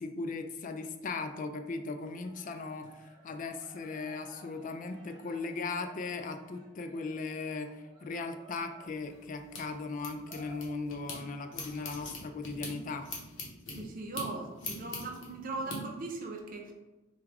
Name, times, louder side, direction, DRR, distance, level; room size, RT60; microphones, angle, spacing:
voice 1, 0.0-13.1, left 3 dB, 40° left, 7 dB, 0.3 m, -38 dB
Cheering, 2.2-12.2, right 2 dB, 20° right, 1.2 m, -57 dB
sound 1, 8.8-11.2 11.5-15.8, left 2 dB, 65° left, 0.8 m, -43 dB
voice 2, 13.7-16.7, right 3 dB, 40° right, 2 dB, 0.6 m, -39 dB
4.6 x 2.3 x 3.4 m, 1.1 s
head